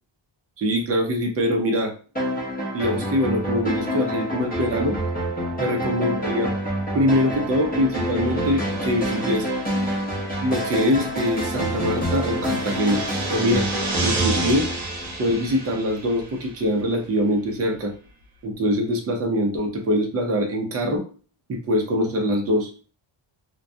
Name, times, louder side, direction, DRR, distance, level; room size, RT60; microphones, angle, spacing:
voice 1, 0.6-1.9 2.7-5.0 5.6-6.5 6.9-9.5 10.4-13.0 13.3-13.7 14.0-14.7 15.2-17.9 18.4-21.0 21.5-22.7, equal, 30° right, 2 dB, 0.5 m, -23 dB
sound 1, 2.2-15.7, equal, 20° left, 0.7 m, -27 dB
sound 2, 7.3-16.8, right 3 dB, 80° right, 0.8 m, -34 dB
2.2 x 2.1 x 2.6 m, 0.38 s
wide cardioid pair, 160°, 47 cm